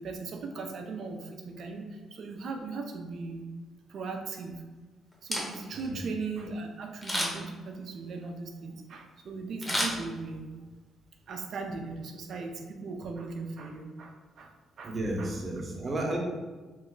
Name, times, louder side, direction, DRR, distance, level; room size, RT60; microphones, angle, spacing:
voice 1, 0.0-3.4 3.9-4.6 5.2-10.5 11.3-14.5 14.8-15.3, right 4 dB, 65° right, 4 dB, 0.5 m, -38 dB
Camera, 5.1-5.9 7.0-7.6 9.6-10.6 11.0-11.1, left 1 dB, 20° left, 0.9 m, -32 dB
voice 2, 5.7-6.0 14.8-16.2, right 1 dB, 30° right, -1 dB, 0.8 m, -32 dB
3.0 x 2.2 x 3.8 m, 1.3 s
cardioid pair, 90°, 0 cm